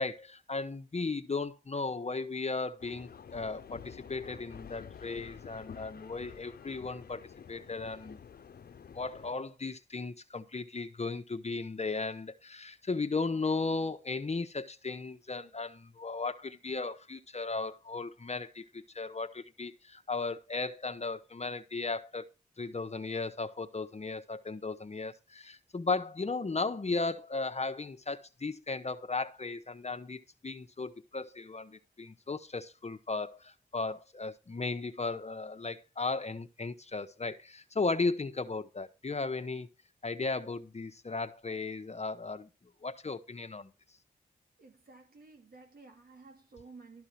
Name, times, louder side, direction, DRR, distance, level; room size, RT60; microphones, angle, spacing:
voice 1, 0.0-8.2 8.9-22.2 22.6-39.7 40.0-42.5 42.8-43.7, left 3 dB, 45° left, 1.1 m, -36 dB
sound 1, 2.8-9.3, left 7 dB, 80° left, 0.7 m, -49 dB
voice 2, 44.6-47.1, right 3 dB, 70° right, 3.1 m, -53 dB
13.0 x 4.7 x 5.9 m
cardioid pair, 45°, 16 cm